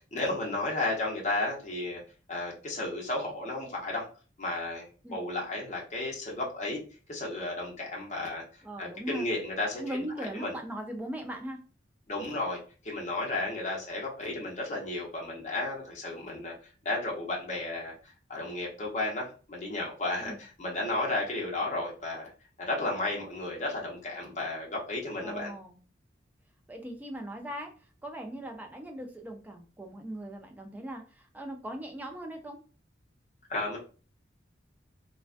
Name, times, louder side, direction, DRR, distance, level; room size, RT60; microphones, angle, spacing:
voice 1, 0.1-2.0 2.3-4.0 4.4-6.8 7.1-8.4 8.8-10.0 10.3-10.5 12.1-12.6 12.8-16.5 16.8-17.9 18.3-22.3 22.6-25.5 33.5-33.8, left 2 dB, 35° left, -3 dB, 0.8 m, -33 dB
voice 2, 8.6-9.3 9.8-11.6 20.2-20.4 25.2-25.8 26.7-27.7 28.0-32.6, right 1 dB, 10° right, 3 dB, 0.4 m, -39 dB
2.3 x 2.2 x 2.4 m, 0.37 s
head